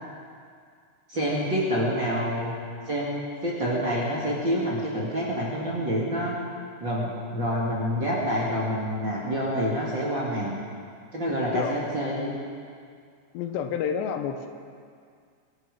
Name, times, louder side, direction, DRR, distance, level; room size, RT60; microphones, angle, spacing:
voice 1, 1.1-2.5 2.9-6.4 6.8-10.6 11.1-12.3, equal, 40° right, -6 dB, 1.8 m, -27 dB
voice 2, 11.3-11.9 13.3-14.5, left 7 dB, 85° left, 6 dB, 3.1 m, -30 dB
24.0 x 11.5 x 4.9 m, 2.2 s
omnidirectional pair, 5.0 m